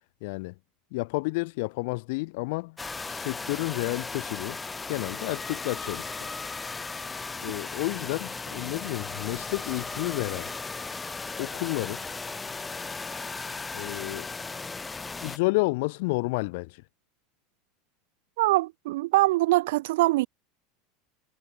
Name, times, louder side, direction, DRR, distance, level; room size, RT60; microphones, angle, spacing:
voice 1, 0.2-0.5 0.9-2.8 3.0-4.6 4.9-6.2 7.4-10.5 11.4-12.0 13.7-14.3 15.2-16.8, left 26 dB, 70° left, 3.1 m, -30 dB
sound 1, 2.8-15.4, left 4 dB, 15° left, 1.6 m, -36 dB
voice 2, 18.4-20.3, right 19 dB, 80° right, 1.2 m, -23 dB
supercardioid pair, 125°, 0 cm